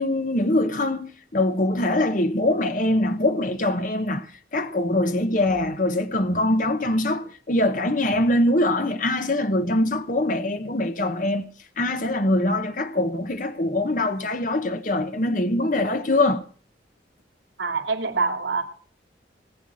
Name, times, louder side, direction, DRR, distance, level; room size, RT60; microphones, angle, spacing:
voice 1, 0.0-4.3 4.5-11.4 11.8-16.4, left 1 dB, 45° left, 1.1 m, -23 dB
voice 2, 17.6-18.6, right 4 dB, 75° right, 2.5 m, -25 dB
19.0 x 9.0 x 6.3 m
head